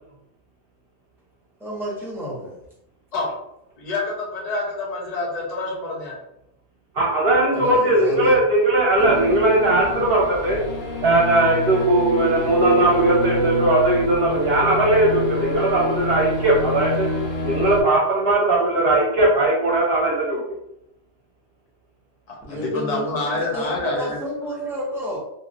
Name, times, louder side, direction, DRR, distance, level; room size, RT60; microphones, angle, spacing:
voice 1, 1.6-2.6 7.5-8.4 22.4-25.2, equal, ahead, -6 dB, 0.9 m, -30 dB
voice 2, 3.8-6.2 22.3-24.2, left 2 dB, 40° left, -2 dB, 0.8 m, -27 dB
voice 3, 6.9-10.6 11.0-17.1 17.4-20.4, right 2 dB, 60° right, -3 dB, 0.9 m, -19 dB
sound 1, 9.0-17.8, left 1 dB, 75° left, 0.9 m, -25 dB
3.1 x 2.7 x 2.5 m, 0.81 s
omnidirectional pair, 1.2 m